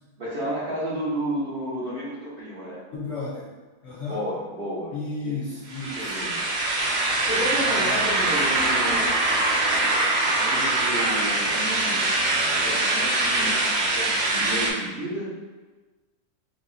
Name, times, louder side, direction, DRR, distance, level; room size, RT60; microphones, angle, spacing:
voice 1, 0.2-2.8 4.0-4.9 5.2-5.4 6.0-6.5 6.9-9.4 10.3-15.3, right 1 dB, 40° right, -9 dB, 0.9 m, -32 dB
voice 2, 2.9-3.5 3.8-4.2 4.9-6.2, left 3 dB, 55° left, -7 dB, 0.9 m, -33 dB
sound 1, 5.7-14.7, right 2 dB, 70° right, 0.4 m, -23 dB
4.8 x 2.3 x 2.7 m, 1.3 s
omnidirectional pair, 1.7 m